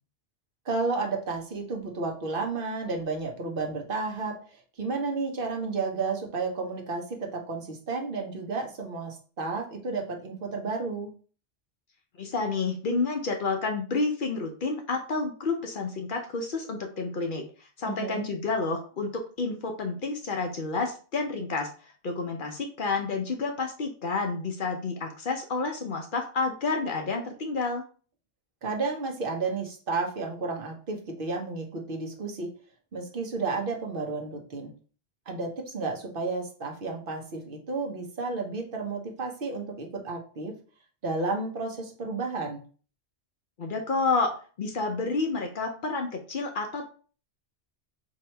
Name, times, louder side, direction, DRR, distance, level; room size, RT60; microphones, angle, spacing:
voice 1, 0.6-11.1 17.8-18.3 28.6-32.5 32.9-34.7 35.3-40.6 41.0-42.6, right 3 dB, 55° right, 2 dB, 0.9 m, -32 dB
voice 2, 12.2-17.4 17.8-21.7 22.0-27.8 43.6-46.9, left 3 dB, 55° left, 3 dB, 0.7 m, -30 dB
2.9 x 2.7 x 4.3 m, 0.40 s
omnidirectional pair, 1.1 m